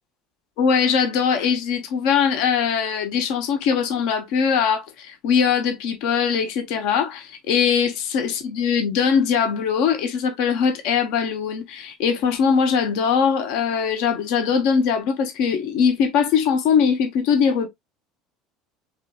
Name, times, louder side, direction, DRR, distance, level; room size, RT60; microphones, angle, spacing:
voice 1, 0.6-17.7, left 6 dB, 60° left, 0.9 m, -21 dB
4.6 x 3.0 x 2.3 m
hypercardioid pair, 70°, 0 cm